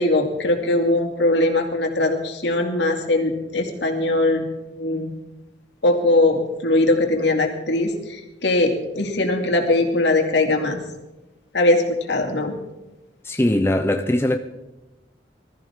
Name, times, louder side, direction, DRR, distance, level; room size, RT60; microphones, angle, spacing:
voice 1, 0.0-5.1 5.8-10.8 11.5-12.5, left 2 dB, 70° left, 2.5 m, -21 dB
voice 2, 13.2-14.4, left 1 dB, 15° left, 0.6 m, -20 dB
21.0 x 14.0 x 3.7 m
head